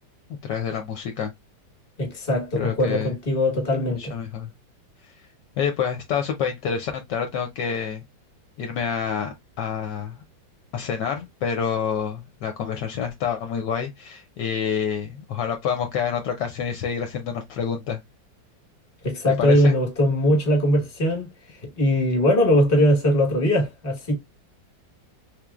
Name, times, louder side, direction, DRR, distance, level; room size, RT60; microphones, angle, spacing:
voice 1, 0.4-1.3 2.6-3.1 3.9-4.5 5.6-8.0 8.6-10.2 10.7-18.0 19.4-19.7, left 7 dB, 75° left, 1.1 m, -28 dB
voice 2, 2.0-4.1 19.0-21.3 21.8-24.1, left 1 dB, 30° left, 1.4 m, -20 dB
3.6 x 3.2 x 2.3 m
omnidirectional pair, 2.1 m